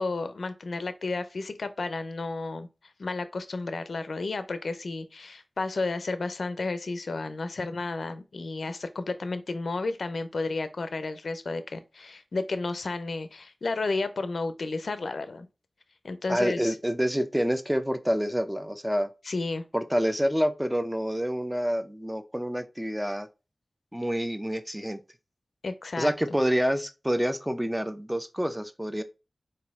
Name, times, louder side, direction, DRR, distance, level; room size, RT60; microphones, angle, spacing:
voice 1, 0.0-2.7 3.0-15.5 16.0-16.7 19.2-19.6 25.6-26.1, left 3 dB, 85° left, 0.4 m, -32 dB
voice 2, 16.3-19.1 19.7-23.3 23.9-25.0 26.0-29.0, equal, 10° right, 0.6 m, -27 dB
4.1 x 2.6 x 3.5 m
cardioid pair, 40°, 0 cm